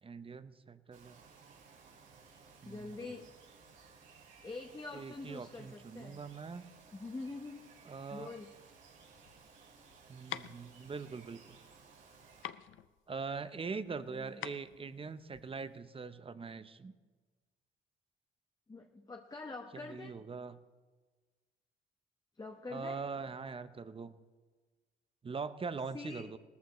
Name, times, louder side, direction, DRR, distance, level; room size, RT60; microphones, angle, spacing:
voice 1, 0.0-1.2 2.6-3.1 4.9-6.7 7.9-8.3 10.1-11.6 13.1-16.9 19.7-20.6 22.7-24.2 25.2-26.4, right 5 dB, 25° right, 13 dB, 0.7 m, -42 dB
Bird vocalization bird call bird song, 0.9-12.5, right 5 dB, 85° right, 4.0 m, -59 dB
voice 2, 2.6-3.3 4.4-6.3 6.9-7.7 8.1-8.5 13.9-14.4 18.7-20.1 22.4-23.0 25.9-26.3, left 3 dB, 20° left, 3 dB, 1.0 m, -45 dB
sound 1, 9.1-15.7, left 12 dB, 75° left, 0.5 m, -47 dB
18.5 x 14.0 x 3.2 m, 1.4 s
cardioid pair, 90°, 20 cm